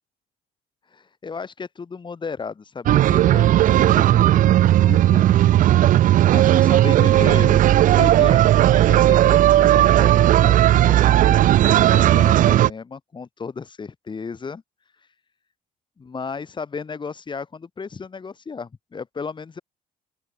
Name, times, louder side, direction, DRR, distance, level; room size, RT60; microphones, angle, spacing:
voice 1, 0.9-4.6 4.9-5.4 6.3-14.6 16.0-19.6, left 5 dB, 30° left, 2.8 m, -34 dB
sound 1, 2.9-12.7, right 13 dB, 50° right, 0.4 m, -15 dB
open air
cardioid pair, 110°, 17 cm